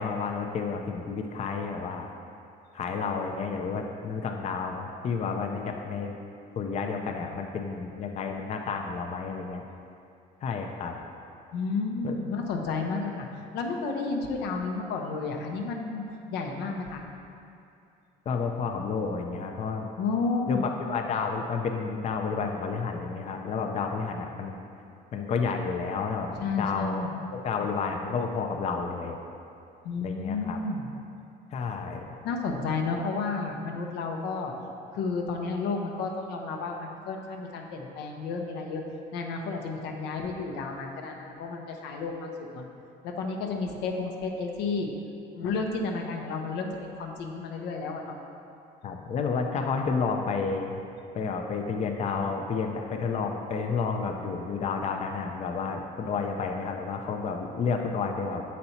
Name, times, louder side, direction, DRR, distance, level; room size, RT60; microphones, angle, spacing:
voice 1, 0.0-2.1 2.7-6.2 6.6-9.6 10.4-11.0 12.0-12.2 18.3-19.9 20.5-24.6 25.1-27.0 27.3-29.2 30.0-30.6 31.5-32.1 48.8-50.8 51.1-58.4, left 5 dB, 40° left, 3 dB, 0.5 m, -30 dB
voice 2, 11.5-13.3 13.5-17.0 20.0-20.6 26.4-27.1 29.8-30.9 32.2-34.5 34.9-38.8 39.1-42.6 43.2-44.9 45.3-48.2, left 4 dB, 85° left, 2 dB, 0.7 m, -31 dB
6.8 x 4.2 x 4.2 m, 2.6 s
cardioid pair, 110°, 17 cm